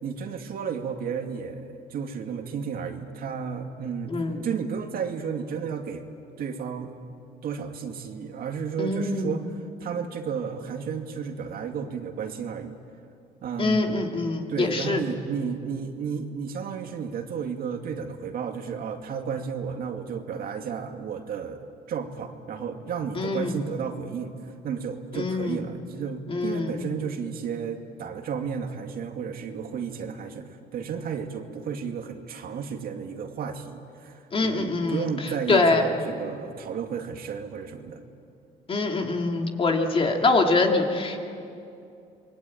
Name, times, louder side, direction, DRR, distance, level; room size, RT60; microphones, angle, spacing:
voice 1, 0.0-4.1 4.4-6.0 6.4-6.9 7.4-9.5 9.8-12.7 13.4-14.0 14.5-38.0, right 6 dB, 60° right, 4 dB, 2.3 m, -33 dB
voice 2, 4.1-4.4 8.8-9.4 13.6-15.0 23.1-23.5 25.2-25.6 26.3-26.8 34.3-35.1 35.5-35.9 38.7-41.2, left 3 dB, 30° left, 2 dB, 2.9 m, -24 dB
27.5 x 22.0 x 8.8 m, 2.5 s
cardioid pair, 110°, 17 cm